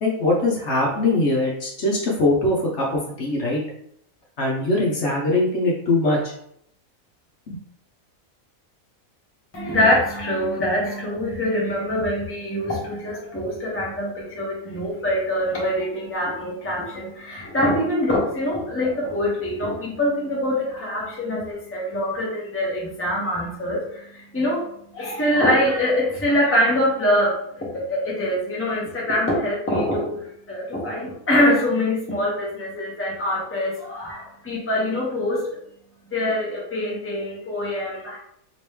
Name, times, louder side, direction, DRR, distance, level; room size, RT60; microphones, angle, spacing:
voice 1, 0.0-3.6 4.4-6.2 7.5-7.6, left 2 dB, 60° left, -3 dB, 1.0 m, -22 dB
voice 2, 9.5-35.6 36.1-38.2, left 1 dB, 10° left, -4 dB, 0.8 m, -24 dB
3.0 x 2.9 x 3.3 m, 0.71 s
omnidirectional pair, 1.5 m